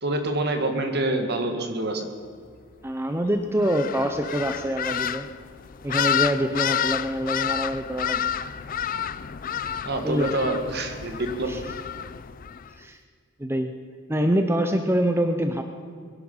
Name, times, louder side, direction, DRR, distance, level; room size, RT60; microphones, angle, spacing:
voice 1, 0.0-2.1 9.9-11.5, right 2 dB, 55° right, 5 dB, 1.9 m, -26 dB
voice 2, 2.8-5.3 5.8-8.3 9.6-10.3 11.5-11.6 12.8-13.0 13.4-13.7 14.1-15.6, right 1 dB, 10° right, 6 dB, 0.7 m, -25 dB
sound 1, 3.6-12.7, left 9 dB, 45° left, 0.4 m, -29 dB
22.0 x 11.0 x 5.6 m, 2.2 s
head